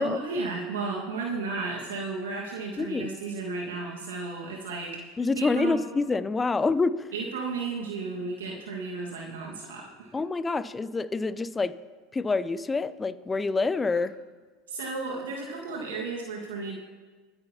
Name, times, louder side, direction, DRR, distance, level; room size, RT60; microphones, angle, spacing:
voice 1, 0.0-5.8 7.1-10.2 14.7-16.7, right 3 dB, 80° right, -2 dB, 1.7 m, -34 dB
voice 2, 2.8-3.1 5.2-7.1 10.1-11.7 12.1-14.1, left 3 dB, 20° left, 16 dB, 0.6 m, -27 dB
23.0 x 9.1 x 2.9 m, 1.4 s
hypercardioid pair, 80°, 0 cm